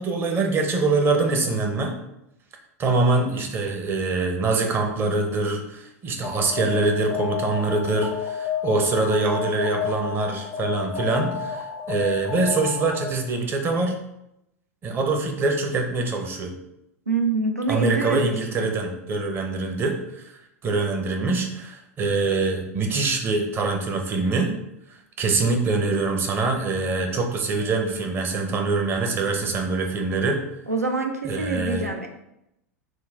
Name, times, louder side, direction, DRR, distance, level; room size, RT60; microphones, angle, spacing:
voice 1, 0.0-1.9 2.8-14.0 14.8-16.5 17.7-20.3 20.6-24.5 25.2-30.4 31.2-31.9, right 3 dB, 25° right, 3 dB, 0.8 m, -24 dB
Alarm, 6.2-13.3, left 7 dB, 35° left, 0.4 m, -31 dB
voice 2, 17.1-18.7 30.7-32.1, right 3 dB, 90° right, 3 dB, 0.5 m, -26 dB
5.9 x 2.3 x 3.4 m, 0.83 s
figure-of-eight pair, 90°, 8 cm